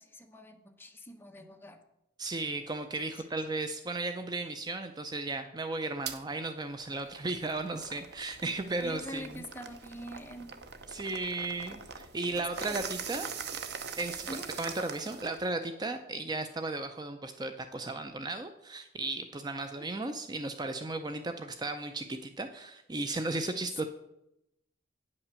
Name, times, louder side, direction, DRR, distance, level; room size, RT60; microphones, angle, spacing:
voice 1, 0.0-1.8 3.2-3.3 8.8-10.5 11.4-11.6 12.4-12.8 13.1-13.3 14.3-14.5 19.8-19.9 23.8-23.9, left 1 dB, 10° left, 4 dB, 0.9 m, -45 dB
voice 2, 2.2-9.4 10.9-13.3 14.0-14.3 14.6-23.8, right 2 dB, 20° right, 8 dB, 0.5 m, -35 dB
sound 1, 6.1-6.2 6.7-15.5, right 6 dB, 65° right, 0.8 m, -42 dB
9.2 x 5.8 x 6.8 m, 0.86 s
head